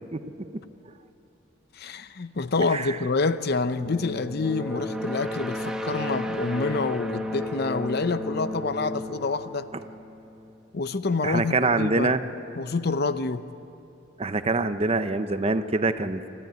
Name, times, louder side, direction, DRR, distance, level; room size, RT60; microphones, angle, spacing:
voice 1, 1.8-9.7 10.7-12.1 12.6-13.5, left 3 dB, 55° left, 0.7 m, -27 dB
voice 2, 2.7-3.0 11.2-12.2 14.2-16.3, right 3 dB, 30° right, 0.7 m, -25 dB
sound 1, 3.8-10.5, left 1 dB, 5° right, 1.2 m, -33 dB
25.0 x 13.5 x 9.4 m
head